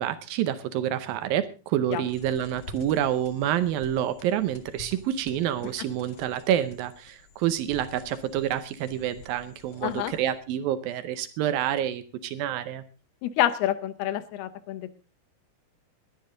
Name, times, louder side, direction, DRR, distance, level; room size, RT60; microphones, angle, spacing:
voice 1, 0.0-12.8, right 11 dB, 75° right, 12 dB, 2.4 m, -28 dB
sound 1, 2.1-10.5, left 4 dB, 50° left, 1.8 m, -49 dB
voice 2, 9.8-10.1 13.2-15.0, left 12 dB, 80° left, 14 dB, 2.9 m, -28 dB
20.0 x 11.5 x 3.8 m, 0.32 s
omnidirectional pair, 4.6 m